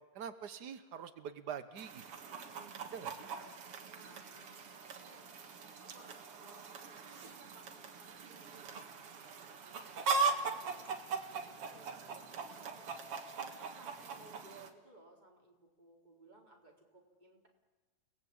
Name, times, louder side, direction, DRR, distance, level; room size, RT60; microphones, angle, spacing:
voice 1, 0.1-2.0 2.8-3.3, right 7 dB, 90° right, 10 dB, 0.9 m, -44 dB
Chicken rooster, 1.8-14.7, right 4 dB, 55° right, 2.5 m, -40 dB
voice 2, 3.2-5.3 5.6-10.8 11.4-13.0 13.4-17.5, right 2 dB, 15° right, 0 dB, 4.0 m, -61 dB
Trumpet, 3.6-8.9, right 1 dB, 5° left, 5.3 m, -64 dB
29.5 x 18.5 x 8.7 m, 1.3 s
omnidirectional pair, 3.4 m